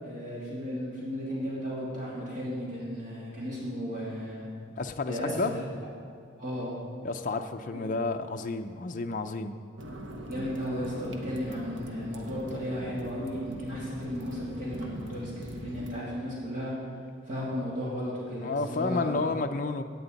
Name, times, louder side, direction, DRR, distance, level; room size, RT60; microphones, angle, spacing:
voice 1, 0.0-4.4 5.1-5.6 6.4-6.7 7.7-7.9 10.3-16.7 17.2-19.1, equal, 40° right, -7 dB, 2.9 m, -34 dB
voice 2, 4.8-5.5 7.0-9.5 18.3-19.8, left 3 dB, 40° left, 5 dB, 0.5 m, -31 dB
sound 1, 9.8-15.9, right 1 dB, 75° right, 1.1 m, -41 dB
17.0 x 8.9 x 4.1 m, 2.3 s
head